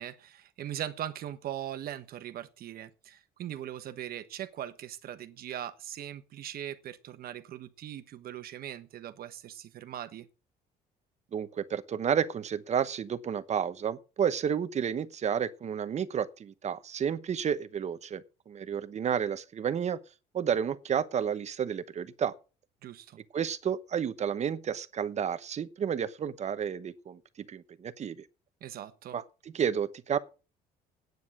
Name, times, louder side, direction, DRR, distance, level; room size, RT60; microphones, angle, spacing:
voice 1, 0.0-10.3 22.8-23.2 28.6-29.2, right 11 dB, 65° right, 1.3 m, -40 dB
voice 2, 11.3-20.0 20.3-22.3 23.3-28.2 29.1-29.2 29.5-30.2, right 8 dB, 40° right, 1.0 m, -31 dB
9.4 x 9.3 x 6.1 m
cardioid pair, 110°, 17 cm